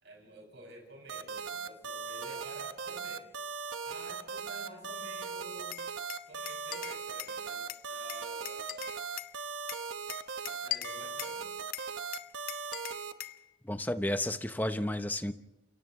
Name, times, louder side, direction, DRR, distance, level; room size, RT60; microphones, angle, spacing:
voice 1, 0.0-3.3 3.8-8.9 10.5-11.5, right 1 dB, 65° right, 0 dB, 6.9 m, -51 dB
sound 1, 1.1-13.1, right 5 dB, 80° right, 1.1 m, -39 dB
Glass, 5.7-7.4 7.7-9.3 9.7-11.4 11.7-13.4, left 13 dB, 45° left, 0.8 m, -41 dB
voice 2, 13.6-15.3, left 1 dB, 10° left, 9 dB, 0.8 m, -32 dB
29.0 x 29.0 x 3.2 m, 1.0 s
head